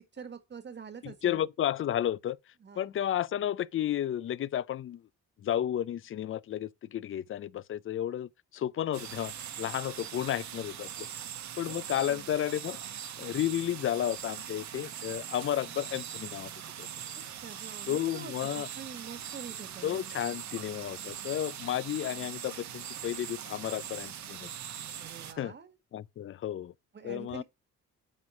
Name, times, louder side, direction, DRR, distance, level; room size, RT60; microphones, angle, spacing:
voice 1, 0.0-1.4 2.6-2.9 11.6-12.3 17.1-20.1 25.0-25.7 26.9-27.4, right 6 dB, 35° right, 1.5 m, -46 dB
voice 2, 1.0-2.4 2.8-5.0 5.4-11.1 11.6-12.8 13.2-16.5 16.8-16.9 17.9-18.7 19.8-24.5 25.4-25.5 25.9-26.7 27.0-27.4, left 11 dB, 45° left, 0.4 m, -32 dB
sound 1, 8.9-25.3, right 9 dB, 65° right, 1.2 m, -41 dB
8.6 x 4.2 x 4.7 m
cardioid pair, 90°, 30 cm